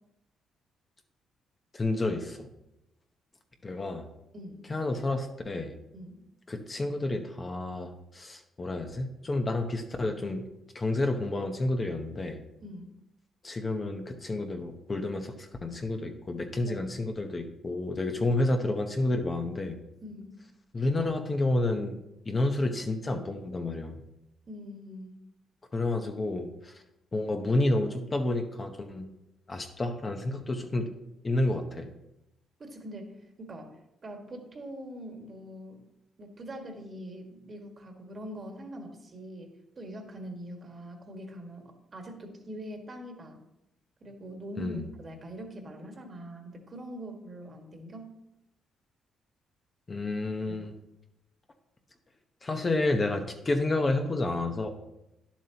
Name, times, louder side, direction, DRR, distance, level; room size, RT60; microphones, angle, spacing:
voice 1, 1.7-2.5 3.6-4.1 4.7-5.7 6.5-10.4 10.7-12.4 13.4-19.8 20.7-24.0 25.7-26.7 27.1-29.1 29.5-30.9 31.2-31.9 44.6-44.8 49.9-50.7 52.4-54.7, left 2 dB, 30° left, 4 dB, 0.9 m, -30 dB
voice 2, 4.3-4.7 5.9-6.2 12.6-12.9 16.7-17.0 18.1-18.4 20.0-20.3 24.5-25.2 32.6-35.8 36.2-43.4 44.0-48.1 50.5-50.7, equal, 40° right, 3 dB, 1.6 m, -43 dB
10.5 x 7.3 x 2.9 m, 0.87 s
cardioid pair, 90°, 0 cm